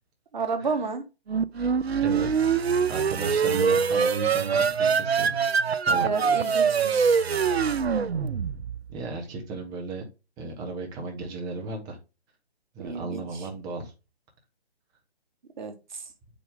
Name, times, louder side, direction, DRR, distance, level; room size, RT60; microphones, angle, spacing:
voice 1, 0.3-1.0 5.9-7.2 12.8-13.4 15.6-16.0, right 4 dB, 45° right, 7 dB, 1.4 m, -31 dB
sound 1, 1.3-8.9, right 6 dB, 75° right, 0.6 m, -24 dB
voice 2, 2.0-2.6 2.9-5.3 5.8-6.1 8.9-10.1 10.4-12.0 12.7-13.9, right 3 dB, 10° right, 2 dB, 1.0 m, -34 dB
6.8 x 4.9 x 3.7 m, 0.28 s
figure-of-eight pair, 140°, 32 cm